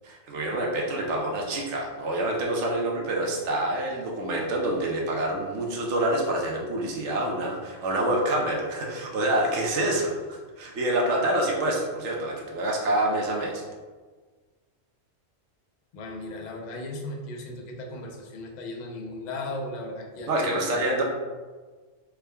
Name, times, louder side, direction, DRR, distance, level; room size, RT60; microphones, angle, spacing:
voice 1, 0.1-13.6 20.3-21.0, right 1 dB, 80° right, 0 dB, 1.0 m, -27 dB
voice 2, 15.9-21.0, left 2 dB, 55° left, 2 dB, 0.5 m, -36 dB
3.5 x 2.2 x 3.3 m, 1.4 s
omnidirectional pair, 1.2 m